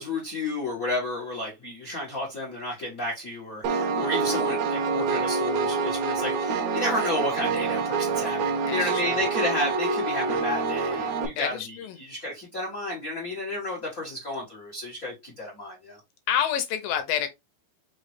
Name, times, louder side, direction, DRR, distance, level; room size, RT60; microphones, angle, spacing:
voice 1, 0.0-16.0, left 1 dB, 60° left, 0.8 m, -32 dB
Piano, 3.6-11.3, right 4 dB, 70° right, 1.7 m, -26 dB
voice 2, 8.7-9.2 11.4-12.0 16.3-17.3, left 9 dB, 80° left, 2.3 m, -28 dB
5.6 x 3.1 x 3.1 m
omnidirectional pair, 4.1 m